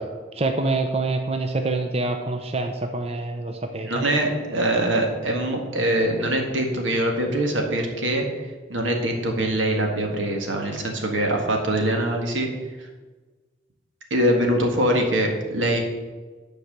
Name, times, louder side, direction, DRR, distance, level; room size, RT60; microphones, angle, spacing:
voice 1, 0.3-4.0, right 2 dB, 30° right, 5 dB, 0.6 m, -26 dB
voice 2, 3.8-8.3 8.7-12.5 14.1-15.8, right 1 dB, 85° right, 2 dB, 1.8 m, -23 dB
10.5 x 4.7 x 6.7 m, 1.3 s
head